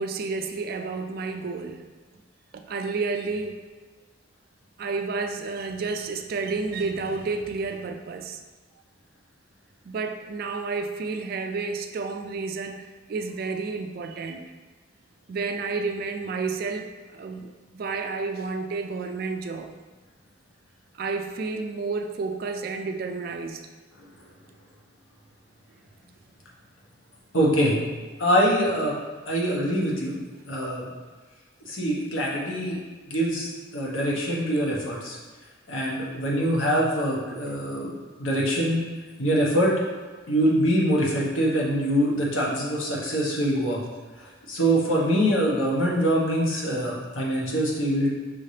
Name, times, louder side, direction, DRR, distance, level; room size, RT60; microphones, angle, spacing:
voice 1, 0.0-1.8 2.5-3.6 4.8-8.4 9.9-14.5 15.3-19.7 21.0-23.6, right 4 dB, 50° right, 6 dB, 0.3 m, -31 dB
voice 2, 27.3-27.8 28.2-28.9 29.3-30.2 30.5-30.8 31.6-32.8 33.0-35.2 35.7-38.8 39.2-39.7 40.3-43.8 44.2-48.1, equal, 80° left, -4 dB, 1.1 m, -24 dB
5.5 x 3.3 x 2.8 m, 1.4 s
head